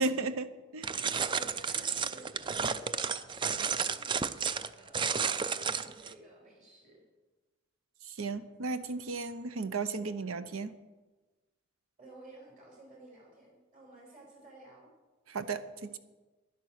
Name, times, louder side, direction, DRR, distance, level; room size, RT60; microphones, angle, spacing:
voice 1, 0.0-1.1 8.0-10.7 15.3-16.0, right 3 dB, 90° right, 13 dB, 0.8 m, -35 dB
sound 1, 0.8-6.1, right 6 dB, 25° right, 0.4 m, -32 dB
voice 2, 1.2-2.3 2.6-7.0 12.0-14.9, right 2 dB, 40° right, -1 dB, 5.5 m, -54 dB
11.0 x 10.5 x 6.5 m, 1.2 s
head